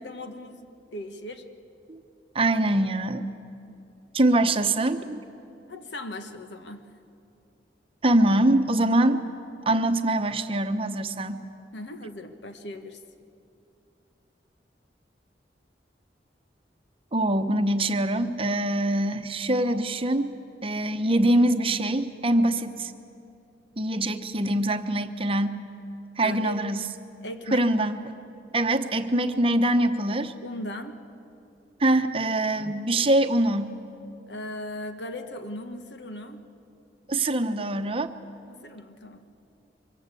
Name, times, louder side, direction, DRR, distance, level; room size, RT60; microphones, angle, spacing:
voice 1, 0.0-1.4 5.7-6.9 11.7-13.0 26.2-26.6 27.2-27.7 30.4-31.0 34.3-36.4 37.3-37.7 38.5-39.2, left 1 dB, 85° left, 7 dB, 1.5 m, -38 dB
voice 2, 2.3-3.3 4.1-5.2 8.0-9.2 9.7-11.4 17.1-20.3 20.6-22.9 23.8-25.6 26.2-26.8 27.5-28.0 28.5-30.3 31.8-33.7 37.1-38.1, right 1 dB, 30° right, 8 dB, 0.9 m, -23 dB
24.0 x 22.0 x 8.4 m, 2.6 s
head